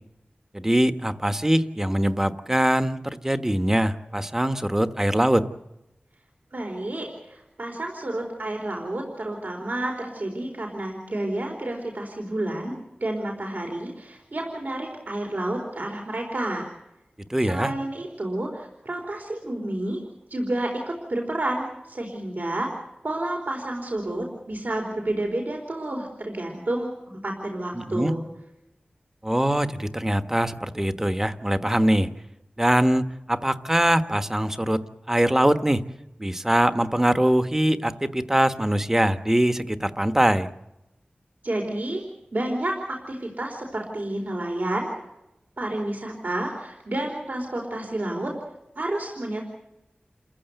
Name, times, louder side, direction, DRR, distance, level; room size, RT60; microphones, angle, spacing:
voice 1, 0.5-5.5 17.3-17.7 27.7-28.1 29.2-32.1 32.6-34.8 35.1-35.8 36.2-40.5, right 1 dB, 15° right, 10 dB, 1.3 m, -22 dB
voice 2, 6.5-12.7 13.0-16.7 17.5-20.0 20.3-22.7 23.0-28.3 41.4-42.0 42.3-44.9 45.6-48.3 48.7-49.4, right 1 dB, 60° right, 1 dB, 4.1 m, -30 dB
29.0 x 15.0 x 8.0 m, 0.95 s
wide cardioid pair, 75°, 3 cm